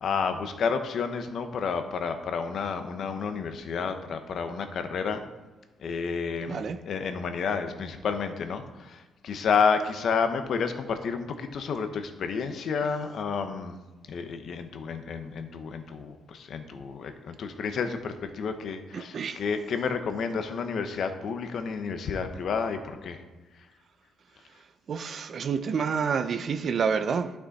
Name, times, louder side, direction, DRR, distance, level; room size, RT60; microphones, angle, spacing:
voice 1, 0.0-5.2 5.8-13.8 14.1-23.2, left 5 dB, 60° left, 1.0 m, -30 dB
voice 2, 6.5-6.8 18.9-19.4 24.9-27.3, right 6 dB, 55° right, 0.5 m, -28 dB
11.5 x 6.2 x 4.2 m
cardioid pair, 90°, 0 cm